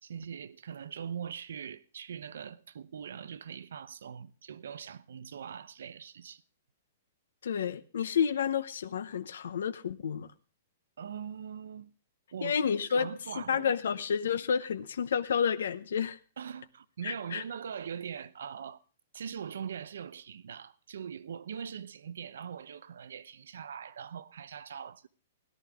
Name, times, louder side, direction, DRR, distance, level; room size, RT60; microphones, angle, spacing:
voice 1, 0.0-6.4 11.0-11.9 12.3-13.7 16.4-18.8 19.1-25.1, right 7 dB, 85° right, 0.7 m, -42 dB
voice 2, 7.4-10.3 12.4-13.1 13.4-16.2 17.0-17.4, left 7 dB, 90° left, 0.8 m, -30 dB
17.0 x 11.0 x 3.6 m
hypercardioid pair, 165°, 0 cm